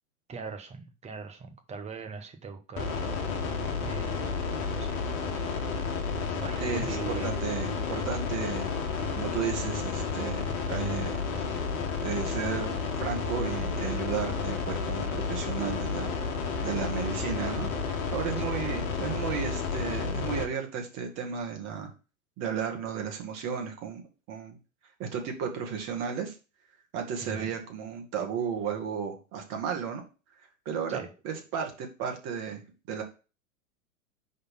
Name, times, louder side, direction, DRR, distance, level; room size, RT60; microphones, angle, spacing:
voice 1, 0.3-3.1 3.8-5.1 5.3-5.5 6.4-7.3 18.4-18.6 27.2-27.5 30.9-31.1, right 5 dB, 15° right, 1.0 m, -41 dB
sound 1, 2.8-20.4, left 5 dB, 40° left, 1.6 m, -31 dB
voice 2, 6.6-8.7 9.1-11.2 12.0-12.7 13.0-16.2 16.6-17.7 18.1-21.9 22.4-24.0 24.3-24.6 25.0-26.4 26.9-30.0 30.7-32.6 32.9-33.0, right 7 dB, 40° right, 1.9 m, -34 dB
5.1 x 4.1 x 5.8 m
hypercardioid pair, 105°, 42 cm